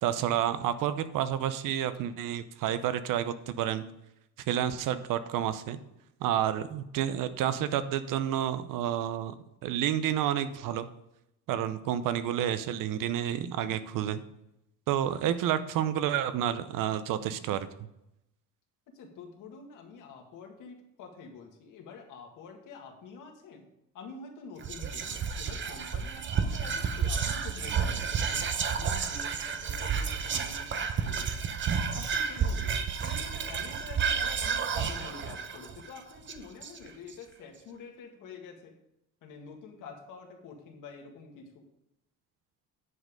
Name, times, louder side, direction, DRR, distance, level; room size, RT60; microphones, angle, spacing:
voice 1, 0.0-3.8 4.5-5.8 6.2-9.3 9.6-10.9 11.5-14.2 14.9-17.7, right 10 dB, 70° right, 13 dB, 0.8 m, -30 dB
voice 2, 15.1-15.5 18.9-23.7 23.9-31.4 31.9-38.8 39.2-41.7, left 5 dB, 65° left, 3 dB, 1.9 m, -47 dB
Whispering, 24.6-37.1, right 6 dB, 35° right, 0.8 m, -31 dB
9.7 x 5.3 x 5.2 m, 0.85 s
cardioid pair, 130°, 33 cm